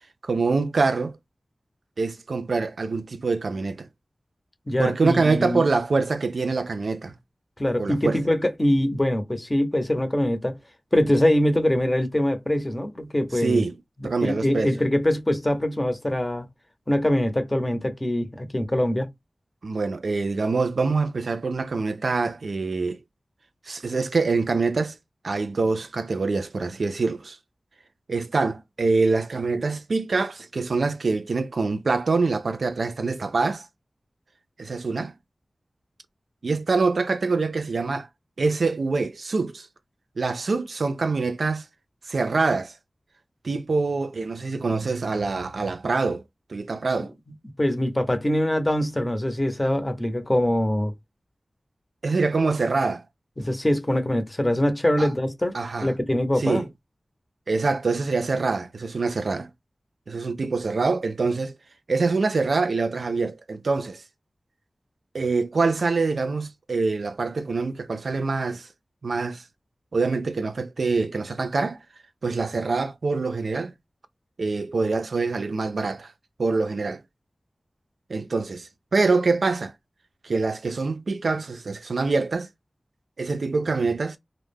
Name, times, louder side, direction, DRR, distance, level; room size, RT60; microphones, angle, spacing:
voice 1, 0.2-1.2 2.0-3.9 4.8-7.1 7.8-8.2 13.3-13.8 14.0-14.7 19.6-23.0 23.7-25.0 25.2-27.4 28.1-33.7 34.6-35.1 36.4-38.1 38.4-39.7 40.2-41.6 42.1-42.7 43.4-46.2 46.5-47.1 52.0-53.0 55.0-55.1 55.5-55.9 56.4-56.7 57.5-59.5 60.1-61.5 61.9-64.0 65.1-68.7 69.0-69.4 69.9-71.8 72.2-73.7 74.4-76.1 76.4-77.0 78.1-79.7 80.2-82.5 83.2-84.2, right 3 dB, 80° right, 0.3 m, -25 dB
voice 2, 4.7-5.6 7.6-10.5 10.9-13.6 14.2-16.5 16.9-19.1 47.6-50.9 53.4-55.6 55.8-56.6, left 1 dB, 25° left, 0.6 m, -23 dB
2.2 x 2.0 x 3.3 m
wide cardioid pair, 50°, 0 cm